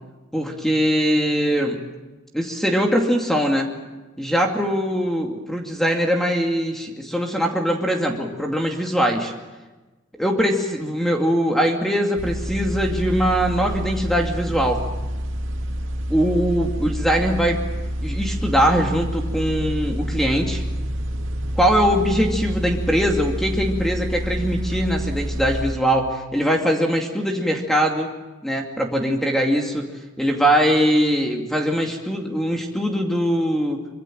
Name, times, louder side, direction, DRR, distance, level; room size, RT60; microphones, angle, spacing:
voice 1, 0.3-1.8 2.3-3.7 4.2-9.3 10.2-14.8 16.1-17.6 18.0-20.6 21.6-28.1 28.4-29.8 30.2-33.8, equal, ahead, 1 dB, 2.4 m, -21 dB
sound 1, 12.2-25.7, equal, 80° right, 2.5 m, -28 dB
25.5 x 25.0 x 7.6 m, 1.2 s
head